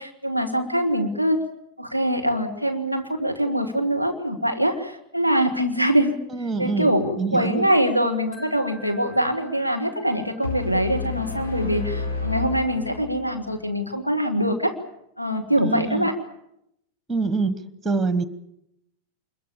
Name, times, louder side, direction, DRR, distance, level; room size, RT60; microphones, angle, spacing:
voice 1, 0.0-1.4 1.8-6.2 6.6-14.7 15.2-16.2, equal, 90° left, 6 dB, 1.8 m, -23 dB
voice 2, 6.3-7.7 15.6-16.1 17.1-18.2, right 4 dB, 10° right, 15 dB, 1.2 m, -26 dB
Wind chime, 8.3-11.4, equal, 5° left, 5.8 m, -49 dB
sound 1, 10.4-13.5, left 4 dB, 70° left, 4.3 m, -30 dB
26.5 x 22.0 x 7.0 m, 0.80 s
figure-of-eight pair, 90°, 0 cm